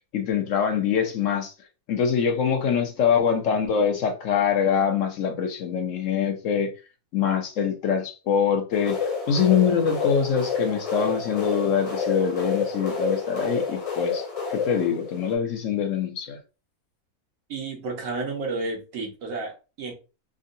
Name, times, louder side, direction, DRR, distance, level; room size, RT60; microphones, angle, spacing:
voice 1, 0.1-1.5 1.9-6.7 7.1-14.2 14.5-16.4, left 7 dB, 65° left, 0.9 m, -24 dB
sound 1, 8.7-15.3, left 5 dB, 45° left, 0.4 m, -29 dB
voice 2, 17.5-19.9, right 3 dB, 65° right, 1.4 m, -31 dB
3.6 x 2.2 x 2.6 m
omnidirectional pair, 1.6 m